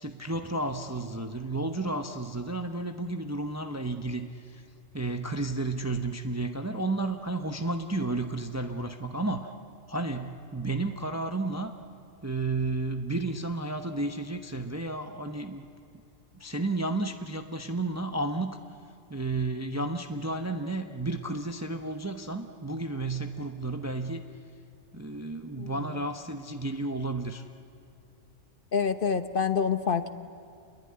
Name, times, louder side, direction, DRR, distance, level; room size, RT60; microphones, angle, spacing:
voice 1, 0.0-4.6 4.9-9.5 9.9-11.7 12.2-15.7 15.9-16.0 16.3-18.6 19.1-24.2 24.9-27.4, right 2 dB, 15° right, 6 dB, 0.9 m, -32 dB
voice 2, 28.7-30.1, left 6 dB, 45° left, 10 dB, 1.2 m, -27 dB
28.0 x 22.0 x 9.7 m, 2.5 s
omnidirectional pair, 1.3 m